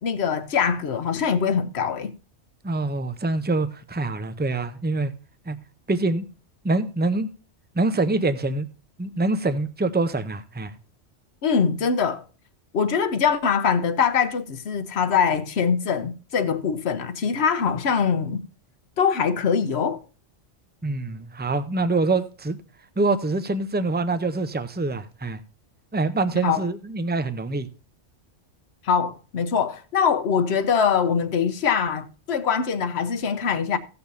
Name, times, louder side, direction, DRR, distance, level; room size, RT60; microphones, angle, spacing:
voice 1, 0.0-2.1 11.4-12.2 12.7-18.4 19.0-20.0 26.4-26.7 28.8-33.8, left 6 dB, 60° left, 1.1 m, -23 dB
voice 2, 2.6-5.1 5.5-5.6 5.9-6.2 6.6-7.3 7.8-8.7 9.0-10.7 20.8-22.6 23.0-25.4 25.9-27.7, right 3 dB, 10° right, 0.5 m, -25 dB
17.0 x 6.9 x 2.7 m
omnidirectional pair, 1.3 m